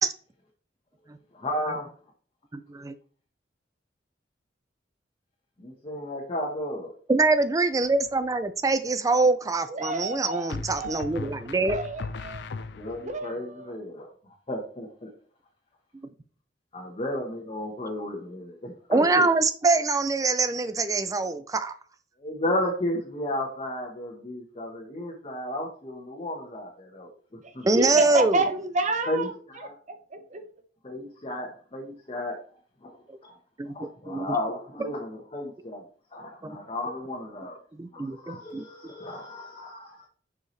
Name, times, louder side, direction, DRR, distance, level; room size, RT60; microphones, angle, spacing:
voice 1, 1.3-1.9 5.6-6.9 12.8-14.1 14.5-15.1 16.7-19.3 22.2-27.1 29.1-29.7 30.8-32.3 32.8-32.9 33.7-35.8 36.1-37.6 37.9-40.0, left 1 dB, 35° left, 1.1 m, -33 dB
voice 2, 2.5-2.9 7.1-11.8 18.9-21.7 27.6-28.4 33.1-33.2 33.6-34.4 34.8-34.9 36.4-36.6 37.8-38.6, right 3 dB, 20° right, 0.4 m, -24 dB
sound 1, 7.8-8.3 10.5-13.2, left 4 dB, 70° left, 0.4 m, -37 dB
voice 3, 9.7-10.5 10.8-11.1 11.7-12.4 13.0-13.8 27.8-29.3 30.1-30.4, right 2 dB, 45° right, 0.9 m, -29 dB
6.8 x 4.7 x 3.2 m
head